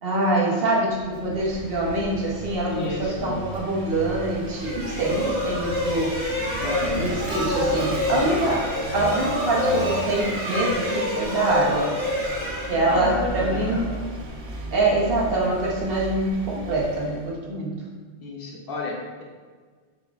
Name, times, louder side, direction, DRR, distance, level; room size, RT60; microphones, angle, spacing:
voice 1, 0.0-6.1 7.0-8.7 8.9-11.9 12.7-13.9 14.7-17.7, right 2 dB, 65° right, -3 dB, 1.0 m, -24 dB
Vehicle / Engine, 0.7-17.4, right 2 dB, 85° right, 0.9 m, -35 dB
voice 2, 2.7-3.4 6.6-7.2 12.8-13.9 18.2-19.2, left 3 dB, 65° left, -1 dB, 0.8 m, -32 dB
sound 1, 4.5-13.3, left 1 dB, 5° right, 1.3 m, -28 dB
4.0 x 3.4 x 2.3 m, 1.5 s
omnidirectional pair, 1.1 m